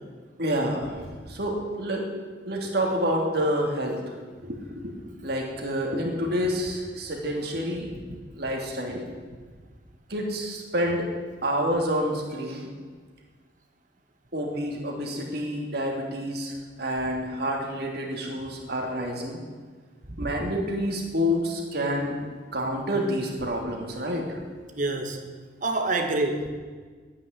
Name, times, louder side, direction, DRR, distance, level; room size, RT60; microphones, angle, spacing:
voice 1, 0.4-2.1 2.5-4.0 4.4-5.0 5.2-7.9 8.4-9.0 10.1-11.1 11.4-12.7 14.3-19.4 20.2-22.2 22.5-24.4, equal, 60° right, 0 dB, 2.9 m, -28 dB
voice 2, 24.8-25.2 25.6-26.5, right 2 dB, 45° right, 5 dB, 1.6 m, -27 dB
10.0 x 9.5 x 10.0 m, 1.5 s
head